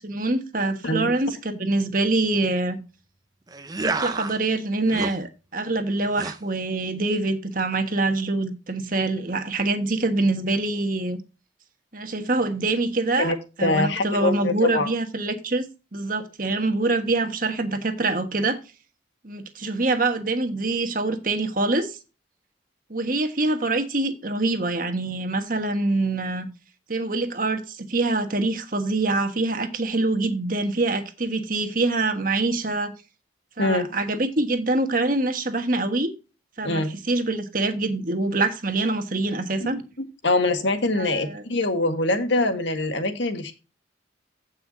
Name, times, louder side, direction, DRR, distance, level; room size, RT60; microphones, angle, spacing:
voice 1, 0.0-2.8 3.8-11.2 11.9-18.6 19.2-22.0 22.9-26.5 26.9-32.9 33.6-36.1 36.6-39.8 41.0-41.4, right 2 dB, 45° right, 1.4 m, -25 dB
sound 1, 3.5-4.4 4.8-5.1 6.1-6.4, right 3 dB, 20° right, 0.6 m, -29 dB
voice 2, 13.2-14.9 33.6-33.9 36.6-36.9 39.6-39.7 40.2-43.5, left 2 dB, 75° left, 1.6 m, -24 dB
15.5 x 5.7 x 2.7 m
head